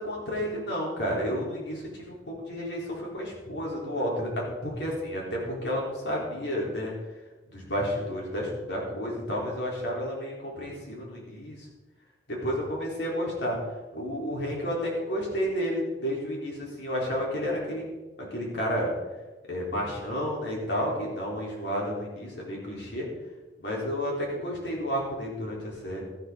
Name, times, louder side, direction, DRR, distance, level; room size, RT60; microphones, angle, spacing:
voice 1, 0.0-6.9 7.5-11.7 12.3-13.6 13.9-17.8 18.3-18.9 19.5-23.1 23.6-26.0, equal, 70° left, -3 dB, 4.0 m, -31 dB
13.0 x 12.0 x 4.0 m, 1.2 s
head